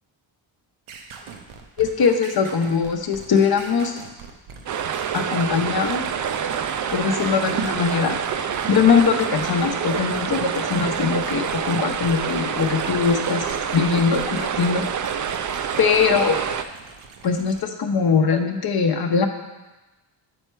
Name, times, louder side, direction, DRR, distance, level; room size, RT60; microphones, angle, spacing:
sound 1, 0.9-17.6, right 6 dB, 85° right, 0.9 m, -41 dB
voice 1, 1.8-4.0 5.1-6.1 6.9-8.2 8.7-13.5 13.7-14.9 15.8-16.4 17.2-19.3, left 6 dB, 50° left, 5 dB, 0.9 m, -21 dB
sound 2, 4.7-16.6, right 7 dB, 40° right, 0.4 m, -27 dB
7.9 x 4.4 x 4.6 m, 1.1 s
cardioid pair, 95°, 48 cm